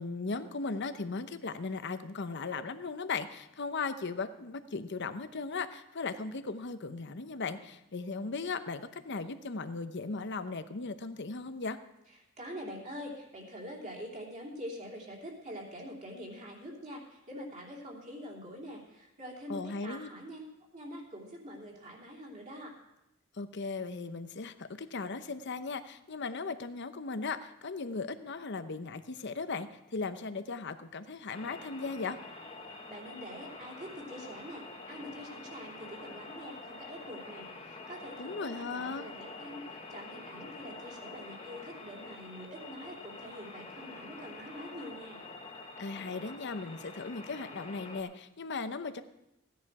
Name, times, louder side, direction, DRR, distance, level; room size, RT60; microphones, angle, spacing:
voice 1, 0.0-11.8 19.5-20.1 23.3-32.2 38.2-39.1 45.8-49.0, left 4 dB, 60° left, 10 dB, 0.8 m, -37 dB
voice 2, 12.4-20.4 20.7-22.7 32.9-45.2, equal, 35° right, -2 dB, 3.1 m, -45 dB
sound 1, 31.3-48.0, left 3 dB, 30° left, 1.4 m, -47 dB
16.0 x 10.5 x 4.8 m, 0.86 s
head